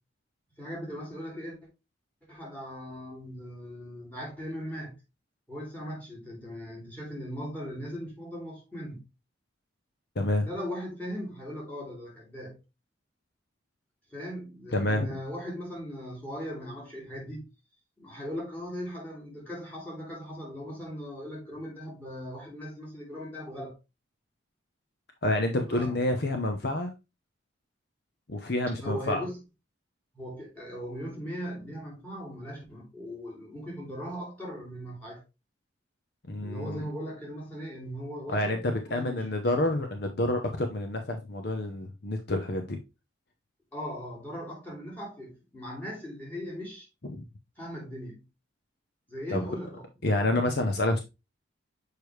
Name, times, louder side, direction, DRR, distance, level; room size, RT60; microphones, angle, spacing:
voice 1, 0.6-1.6 2.3-4.9 5.5-9.0 10.4-12.6 14.1-17.5 18.0-23.8 25.7-26.2 28.8-29.4 30.1-35.2 36.4-39.3 43.7-46.9 47.6-48.2 49.1-50.3, equal, 10° left, 2.8 m, -39 dB
voice 2, 10.2-10.5 14.7-15.2 25.2-26.9 28.3-29.2 36.3-36.9 38.3-42.8 47.1-47.2 49.3-49.5 50.0-51.0, left 1 dB, 55° left, 0.8 m, -28 dB
6.7 x 4.8 x 3.2 m
head